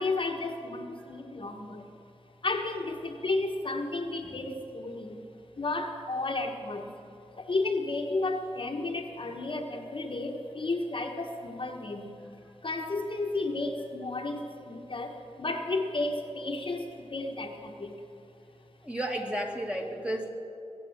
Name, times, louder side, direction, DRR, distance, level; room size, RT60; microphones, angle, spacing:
voice 1, 0.0-1.9 2.4-5.2 5.6-6.9 7.4-12.2 12.6-18.0, left 2 dB, 50° left, 3 dB, 1.3 m, -32 dB
voice 2, 18.8-20.3, right 1 dB, 10° right, 1 dB, 2.0 m, -32 dB
22.0 x 8.3 x 6.4 m, 2.7 s
wide cardioid pair, 60°, 11 cm